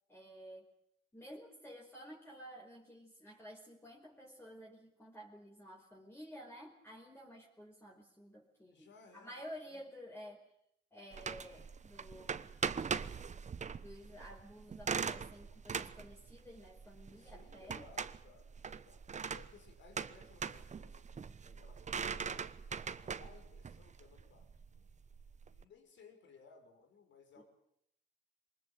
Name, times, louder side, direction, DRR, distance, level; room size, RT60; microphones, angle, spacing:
voice 1, 0.1-0.7 1.1-8.9 9.1-10.5 10.9-12.5 13.8-17.8 27.4-27.5, equal, 10° left, -1 dB, 5.0 m, -52 dB
voice 2, 8.7-9.3 9.6-9.9 17.1-19.1 19.3-22.6 22.9-24.9 25.4-27.4, left 5 dB, 65° left, 5 dB, 6.4 m, -61 dB
sound 1, 11.1-25.6, right 6 dB, 35° right, 1.1 m, -41 dB
24.0 x 20.0 x 9.3 m, 0.74 s
cardioid pair, 90°, 20 cm